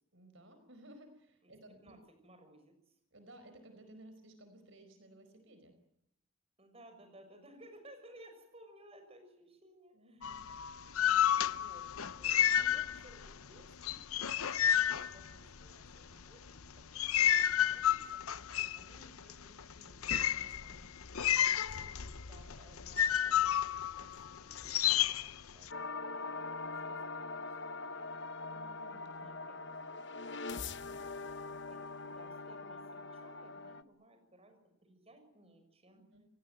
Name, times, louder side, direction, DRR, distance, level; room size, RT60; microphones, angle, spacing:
voice 1, 0.1-1.9 3.1-5.8 9.9-10.5 17.7-17.8 20.3-20.8 28.5-29.5 35.9-36.2, right 1 dB, 60° right, 8 dB, 4.8 m, -57 dB
voice 2, 2.2-3.0 6.6-10.3 11.0-16.6 16.9-18.3 18.7-20.1 20.4-20.9 21.4-24.8 25.2-28.6 29.1-36.1, right 1 dB, 25° right, 6 dB, 6.4 m, -60 dB
sound 1, 10.2-13.3 13.6-15.9 16.5-25.7, left 10 dB, 85° left, 0.9 m, -31 dB
sound 2, 25.7-33.8, left 3 dB, 55° left, 1.1 m, -42 dB
29.0 x 18.5 x 9.2 m, 0.79 s
head